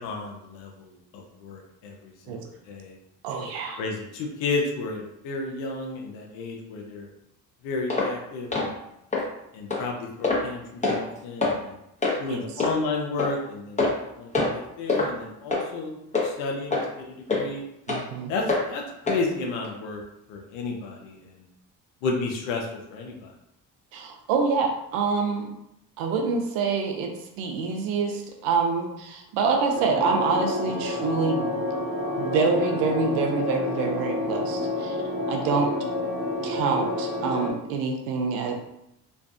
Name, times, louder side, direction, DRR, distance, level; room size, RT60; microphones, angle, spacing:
voice 1, 0.0-2.4 2.7-3.0 3.8-7.1 7.6-8.8 9.5-11.8 12.2-13.8 14.2-16.0 16.2-17.6 18.3-20.0 20.3-21.3 22.0-23.3, left 3 dB, 80° left, 1 dB, 0.6 m, -32 dB
voice 2, 3.2-3.8 12.3-12.4 17.9-18.3 23.9-25.5 26.0-31.6 32.2-35.0 35.3-35.7 36.4-38.5, right 4 dB, 80° right, 2 dB, 0.6 m, -26 dB
sound 1, 7.9-8.1 8.5-8.7 9.1-9.2 9.7-9.8 10.2-10.5 10.8-11.0 11.4-11.6 12.0-12.2 12.6-12.7 13.2-13.3 13.8-14.0 14.3-14.6 14.9-15.1 15.5-15.7 16.1-16.3 16.7-16.9 17.3-17.4 17.9-18.0 18.5-18.6 19.1-19.2 19.6-19.7, left 3 dB, 15° left, 0.9 m, -24 dB
sound 2, 29.7-37.5, left 1 dB, 25° right, 1.0 m, -29 dB
2.5 x 2.3 x 2.3 m, 0.82 s
hypercardioid pair, 50°, 46 cm